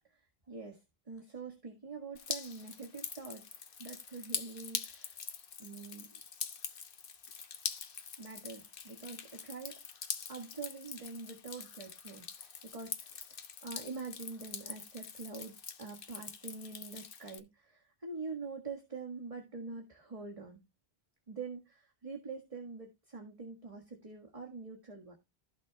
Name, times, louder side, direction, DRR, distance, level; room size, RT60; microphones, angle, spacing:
voice 1, 0.0-5.2 5.6-6.2 8.2-9.8 10.3-20.6 21.3-25.1, right 4 dB, 35° right, 1.8 m, -45 dB
Drip, 2.2-17.4, left 6 dB, 60° left, 1.1 m, -44 dB
15.5 x 6.4 x 2.2 m
omnidirectional pair, 1.0 m